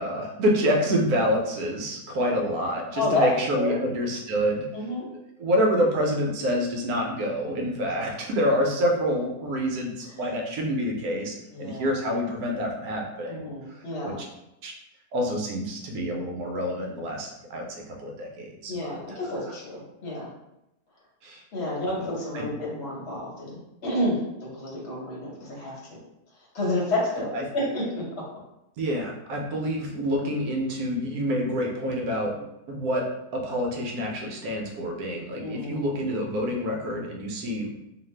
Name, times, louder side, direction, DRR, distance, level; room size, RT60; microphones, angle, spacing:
voice 1, 0.0-4.7 5.4-13.8 14.0-14.3 14.6-14.7 15.1-19.5 21.2-21.4 22.3-22.5 27.3-27.4 28.8-32.3 32.7-33.1 33.3-37.8, equal, 70° right, 0 dB, 1.0 m, -27 dB
voice 2, 2.9-3.8 4.7-5.1 11.5-11.9 13.3-14.2 18.7-20.3 21.5-24.2 24.5-26.0 26.5-28.0 35.3-35.9, left 1 dB, 45° left, -4 dB, 1.1 m, -29 dB
2.7 x 2.5 x 3.1 m, 0.87 s
omnidirectional pair, 1.8 m